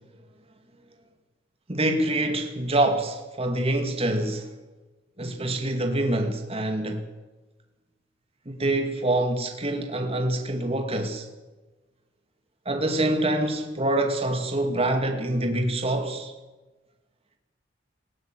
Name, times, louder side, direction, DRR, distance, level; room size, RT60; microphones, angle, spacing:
voice 1, 1.7-4.5 5.2-7.0 8.5-11.3 12.7-16.3, right 1 dB, 30° right, 5 dB, 2.4 m, -25 dB
20.0 x 16.0 x 9.2 m, 1.1 s
head